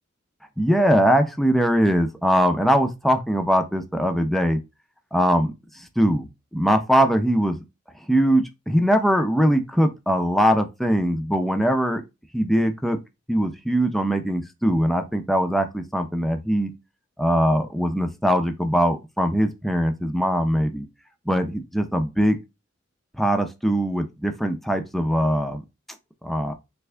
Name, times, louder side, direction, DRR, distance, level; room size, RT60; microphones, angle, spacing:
voice 1, 0.6-4.6 5.1-5.5 6.0-6.3 6.5-7.6 8.1-12.0 12.3-13.0 13.3-16.7 17.2-20.9 21.3-22.4 23.2-25.6 26.2-26.5, equal, ahead, 0.4 m, -21 dB
3.5 x 2.5 x 3.3 m
head